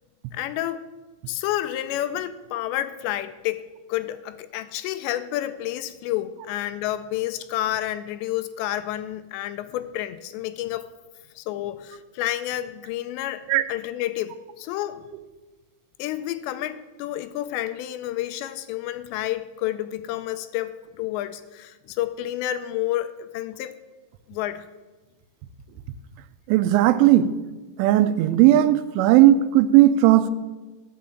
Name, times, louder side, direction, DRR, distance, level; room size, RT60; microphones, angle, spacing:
voice 1, 0.3-0.9 1.3-3.6 3.9-10.9 11.4-15.1 16.0-23.8 24.3-24.7, left 13 dB, 85° left, 2.6 m, -30 dB
voice 2, 26.5-27.3 27.8-30.3, right 13 dB, 85° right, 3.1 m, -16 dB
14.5 x 5.6 x 7.7 m
omnidirectional pair, 5.5 m